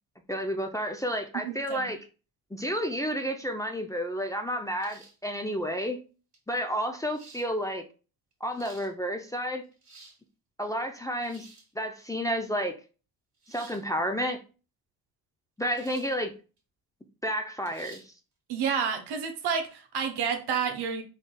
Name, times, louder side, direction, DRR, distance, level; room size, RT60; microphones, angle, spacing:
voice 1, 0.3-2.0 2.5-6.0 6.5-7.8 8.4-9.6 10.6-11.5 11.8-12.7 13.5-14.4 15.6-16.3 17.2-18.0, equal, 10° left, 3 dB, 0.5 m, -31 dB
voice 2, 1.3-1.9 18.5-21.0, right 6 dB, 75° right, 6 dB, 0.8 m, -30 dB
sound 1, 4.8-5.3 6.3-6.4 7.1-7.5 8.3-8.9 9.6-10.2 11.2-11.7 13.4-13.8 15.7-16.2 16.6-16.7 17.7-18.1, right 3 dB, 45° right, 1.6 m, -52 dB
3.8 x 3.3 x 2.2 m, 0.35 s
supercardioid pair, 60°, 40 cm